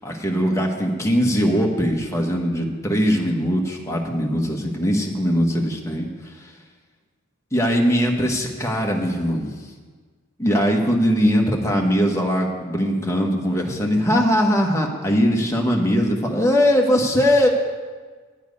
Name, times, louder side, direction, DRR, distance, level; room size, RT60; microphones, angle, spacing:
voice 1, 0.0-6.5 7.5-9.5 10.4-17.5, equal, 15° left, 0 dB, 1.1 m, -20 dB
9.6 x 8.9 x 5.2 m, 1.5 s
head